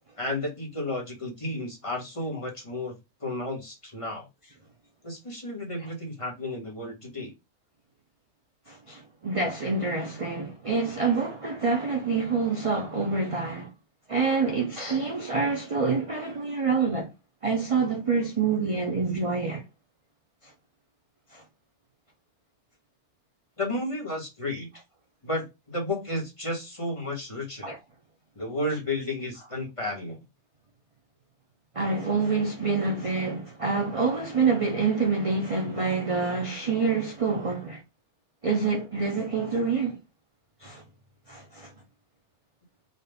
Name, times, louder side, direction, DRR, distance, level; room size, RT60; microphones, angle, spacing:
voice 1, 0.2-2.9 3.2-4.2 5.0-7.3 23.6-24.7 25.2-27.7 28.3-30.2, left 1 dB, 20° left, 1.4 m, -32 dB
voice 2, 8.7-13.7 14.1-17.1 17.4-19.6 21.3-21.4 27.6-27.8 31.7-37.8 38.4-40.0 40.6-40.8 41.3-41.7, right 4 dB, 40° right, 0.4 m, -27 dB
4.1 x 2.5 x 3.4 m
omnidirectional pair, 1.6 m